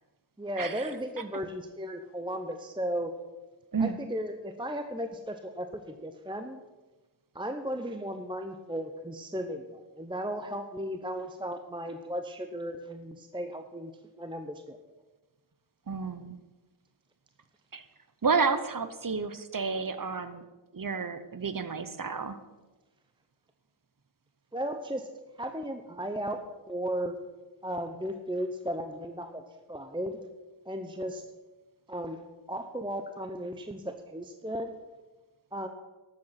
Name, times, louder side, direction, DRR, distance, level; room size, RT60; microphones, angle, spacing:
voice 1, 0.4-3.1 3.8-6.6 7.3-14.8 24.5-25.1 25.4-27.2 27.6-29.4 29.7-30.2 30.7-31.2 31.9-32.2 32.5-34.7 35.5-35.7, equal, 10° right, 7 dB, 0.7 m, -35 dB
voice 2, 15.9-16.4 17.7-17.8 18.2-20.4 20.7-22.4, right 5 dB, 45° right, 11 dB, 0.9 m, -30 dB
12.5 x 7.9 x 5.7 m, 1.2 s
wide cardioid pair, 50°, 47 cm